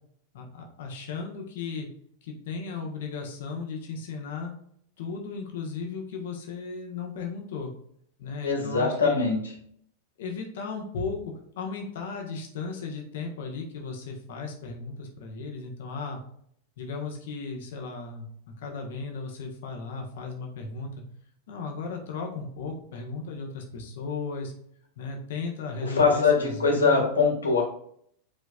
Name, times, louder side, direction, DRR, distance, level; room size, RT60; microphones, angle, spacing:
voice 1, 0.3-1.9 2.2-4.5 5.0-7.7 8.2-9.2 10.2-16.2 16.8-21.0 21.5-24.5 25.0-27.1, left 4 dB, 55° left, 2 dB, 1.3 m, -36 dB
voice 2, 8.4-9.4 25.8-27.6, left 4 dB, 75° left, -1 dB, 1.8 m, -22 dB
8.8 x 4.6 x 2.4 m, 0.66 s
figure-of-eight pair, 90°, 0 cm